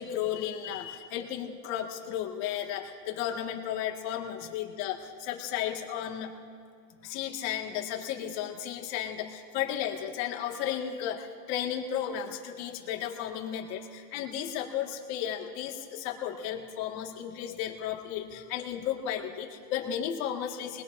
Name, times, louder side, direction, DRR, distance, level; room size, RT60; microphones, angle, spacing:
voice 1, 0.0-6.3 7.0-20.8, left 10 dB, 70° left, 1 dB, 2.0 m, -34 dB
22.5 x 20.0 x 2.7 m, 2.2 s
supercardioid pair, 130°, 43 cm